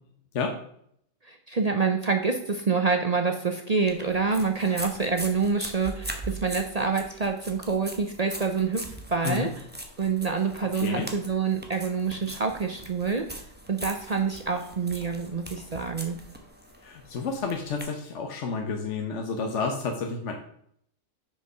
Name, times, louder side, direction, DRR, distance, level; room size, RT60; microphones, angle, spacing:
voice 1, 1.2-9.5 10.0-13.4 13.7-16.2, right 5 dB, 45° right, 4 dB, 0.5 m, -27 dB
sound 1, 3.9-17.8, right 1 dB, 10° right, 0.8 m, -41 dB
voice 2, 16.8-20.4, left 4 dB, 60° left, 3 dB, 1.1 m, -30 dB
6.6 x 5.0 x 5.5 m, 0.68 s
omnidirectional pair, 1.4 m